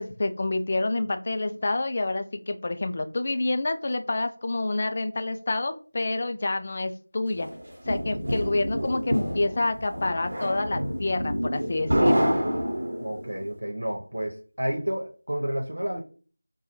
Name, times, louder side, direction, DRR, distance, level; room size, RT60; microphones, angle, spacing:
voice 1, 0.0-7.5 7.9-12.3, left 2 dB, 30° left, 8 dB, 0.3 m, -28 dB
sound 1, 7.4-13.3, equal, 40° right, 1.1 m, -27 dB
voice 2, 13.0-16.0, equal, 85° right, 0 dB, 0.8 m, -30 dB
4.8 x 2.2 x 3.0 m, 0.39 s
figure-of-eight pair, 175°, 0 cm